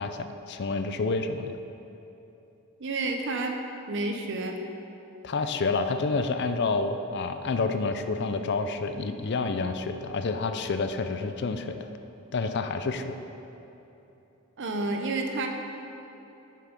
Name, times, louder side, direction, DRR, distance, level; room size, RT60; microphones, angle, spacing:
voice 1, 0.0-1.6 5.2-11.8 12.3-13.2, left 3 dB, 50° left, 8 dB, 0.4 m, -29 dB
voice 2, 2.8-3.6 3.9-4.6 14.6-15.5, right 2 dB, 55° right, 4 dB, 0.8 m, -30 dB
7.6 x 7.2 x 5.2 m, 3.0 s
head